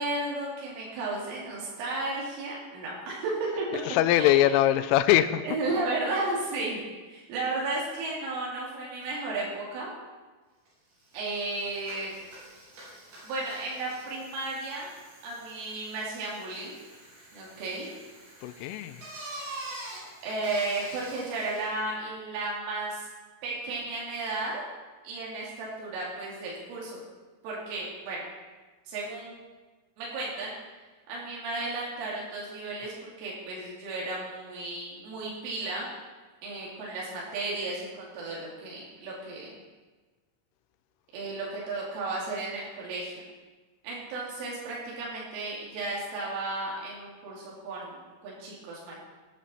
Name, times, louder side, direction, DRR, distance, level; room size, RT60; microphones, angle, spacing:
voice 1, 0.0-3.8 4.1-4.5 5.4-6.8 7.1-9.9 11.1-12.2 13.2-14.9 15.2-16.8 17.3-17.9 20.2-23.1 23.4-24.6 25.0-27.0 27.4-28.2 28.9-29.3 30.0-30.5 31.1-35.9 36.4-39.5 41.1-43.2 43.8-48.9, right 2 dB, 80° right, -6 dB, 5.0 m, -34 dB
voice 2, 3.9-5.4 18.4-19.0, left 13 dB, 90° left, 12 dB, 3.1 m, -22 dB
Bicycle, 10.7-10.8 11.0-21.8, right 2 dB, 60° right, 6.1 m, -46 dB
18.5 x 9.1 x 4.3 m, 1.3 s
omnidirectional pair, 5.6 m